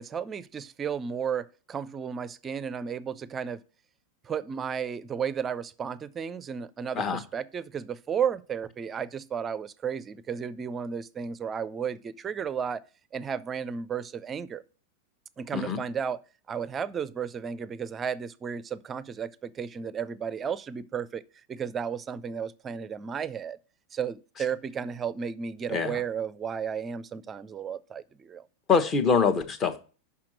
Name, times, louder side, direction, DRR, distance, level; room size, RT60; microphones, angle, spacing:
voice 1, 0.0-3.6 4.2-12.8 13.1-14.6 15.4-16.2 16.5-21.2 21.5-23.6 23.9-28.5, right 7 dB, 20° right, 0.5 m, -33 dB
voice 2, 28.7-29.8, left 5 dB, 30° left, 1.1 m, -24 dB
5.9 x 5.7 x 6.3 m
figure-of-eight pair, 90°, 0 cm